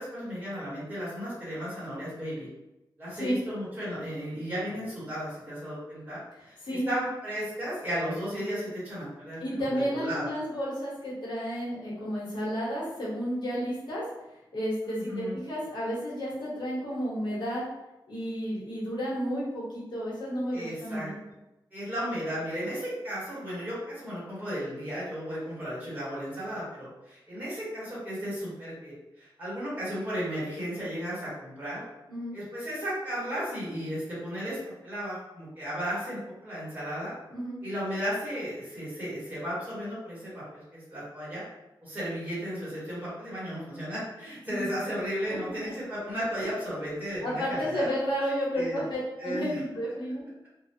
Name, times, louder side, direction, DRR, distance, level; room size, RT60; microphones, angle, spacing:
voice 1, 0.0-2.5 3.0-6.2 6.4-10.3 14.8-15.4 20.5-21.1 21.7-31.8 32.3-37.1 37.6-41.4 41.8-47.9 48.5-48.8 49.2-49.6, equal, 20° right, -10 dB, 1.3 m, -34 dB
voice 2, 9.4-14.0 14.5-17.6 18.1-21.2 32.1-32.3 37.3-37.6 44.5-44.7 45.6-45.7 46.4-46.5 47.2-50.2, equal, 60° left, -7 dB, 1.0 m, -32 dB
2.4 x 2.2 x 2.6 m, 0.98 s
wide cardioid pair, 140°, 8 cm